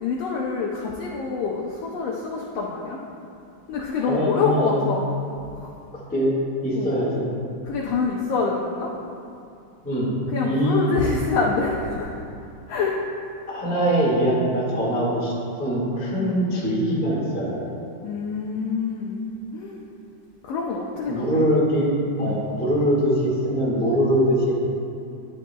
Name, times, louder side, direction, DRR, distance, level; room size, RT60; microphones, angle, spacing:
voice 1, 0.0-3.0 3.7-5.1 5.5-5.7 6.7-7.0 7.6-8.9 10.3-12.1 12.7-13.0 16.2-16.4 18.0-19.2 19.5-19.8 20.4-21.5 22.3-22.4, left 4 dB, 75° left, -2 dB, 1.5 m, -26 dB
voice 2, 4.0-4.8 6.1-6.4 6.6-7.3 9.8-10.1 10.4-10.8 13.5-17.7 21.1-24.5, equal, 5° left, -6 dB, 0.8 m, -22 dB
11.0 x 10.0 x 2.3 m, 2.6 s
omnidirectional pair, 3.5 m